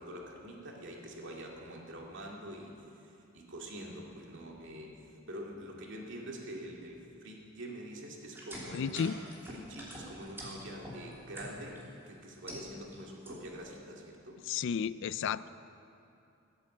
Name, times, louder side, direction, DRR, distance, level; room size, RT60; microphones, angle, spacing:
voice 1, 0.0-2.7 3.0-5.0 5.3-9.1 9.5-14.4, right 1 dB, 65° right, -1 dB, 2.3 m, -45 dB
sound 1, 8.3-11.8 12.2-13.0 13.2-13.7, equal, 10° right, 3.0 m, -45 dB
voice 2, 8.7-9.1 14.5-15.5, left 7 dB, 60° left, 16 dB, 0.3 m, -32 dB
16.5 x 8.5 x 7.7 m, 2.7 s
head